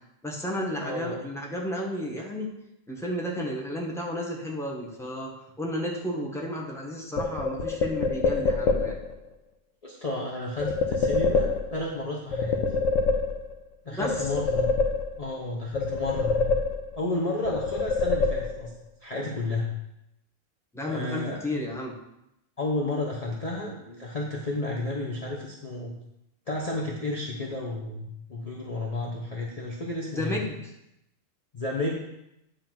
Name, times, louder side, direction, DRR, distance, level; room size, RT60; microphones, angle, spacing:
voice 1, 0.2-2.5 2.9-5.3 5.6-9.0 13.9-14.3 20.7-21.9 30.1-30.7, left 1 dB, ahead, -2 dB, 1.2 m, -32 dB
voice 2, 0.8-1.2 9.8-12.7 13.8-14.7 15.2-16.4 17.0-18.7 19.0-19.7 20.8-21.4 22.6-25.9 26.5-30.4 31.5-32.0, left 2 dB, 30° left, -3 dB, 0.9 m, -32 dB
sound 1, 7.2-9.1 10.6-12.0 12.3-13.7 14.0-15.4 15.7-17.1 17.4-18.8, left 4 dB, 75° left, 1.1 m, -26 dB
9.6 x 3.4 x 5.9 m, 0.85 s
omnidirectional pair, 1.4 m